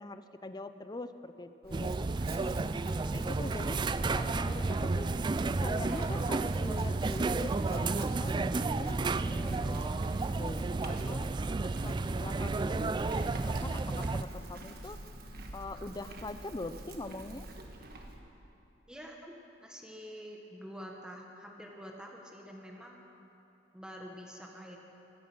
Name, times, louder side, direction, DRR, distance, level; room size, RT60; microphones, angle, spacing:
voice 1, 0.0-1.9 3.1-3.8 4.2-5.1 5.6-11.3 11.6-15.0 15.5-17.5, left 2 dB, 25° left, 11 dB, 0.6 m, -43 dB
Chewing mastication / Livestock farm animals working animals, 1.6-18.2, right 1 dB, 55° right, 1.5 m, -46 dB
sound 1, 1.7-14.2, right 3 dB, 25° right, 0.3 m, -32 dB
voice 2, 18.9-23.0 23.7-24.8, equal, 5° right, 0 dB, 1.3 m, -47 dB
17.0 x 13.0 x 6.2 m, 2.9 s
head